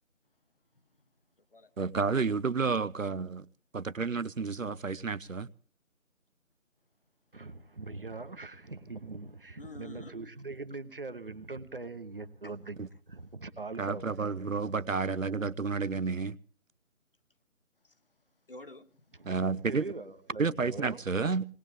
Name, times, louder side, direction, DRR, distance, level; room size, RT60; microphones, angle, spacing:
voice 1, 1.8-3.5 3.7-5.5 12.8-12.9 13.8-16.4 19.3-19.8 20.4-21.4, right 4 dB, 70° right, 0.8 m, -30 dB
voice 2, 7.3-12.8 13.1-14.2 19.2-19.3 19.6-21.0, right 3 dB, 40° right, 1.1 m, -42 dB
voice 3, 9.6-10.2 17.8-18.0 18.5-19.3, left 2 dB, 40° left, 1.0 m, -49 dB
20.5 x 20.0 x 3.3 m
figure-of-eight pair, 160°, 41 cm